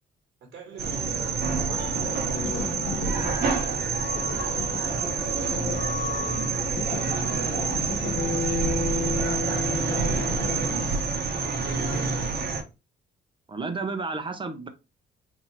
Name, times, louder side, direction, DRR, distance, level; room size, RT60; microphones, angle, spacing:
voice 1, 0.4-4.1 4.7-10.8 11.6-12.6, right 5 dB, 70° right, 1.3 m, -42 dB
sound 1, 0.8-12.6, right 5 dB, 50° right, 1.1 m, -27 dB
sound 2, 1.6-11.1, left 4 dB, 45° left, 0.7 m, -33 dB
voice 2, 13.5-14.7, right 3 dB, 25° right, 0.9 m, -31 dB
3.7 x 2.8 x 3.2 m
cardioid pair, 90°, 20 cm